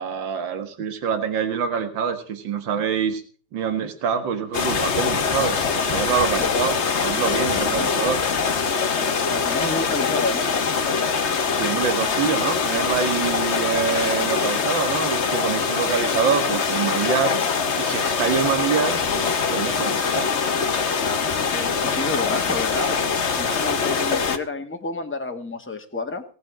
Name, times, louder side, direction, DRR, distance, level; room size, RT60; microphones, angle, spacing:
voice 1, 0.0-3.2 3.5-8.2 11.5-17.4 17.8-20.3, right 7 dB, 70° right, 8 dB, 2.4 m, -25 dB
sound 1, 4.5-24.4, left 5 dB, 40° left, 1.2 m, -23 dB
voice 2, 7.5-7.9 9.0-10.5 21.4-26.2, left 3 dB, 5° left, 3 dB, 1.6 m, -30 dB
18.5 x 7.7 x 7.5 m, 0.41 s
omnidirectional pair, 2.2 m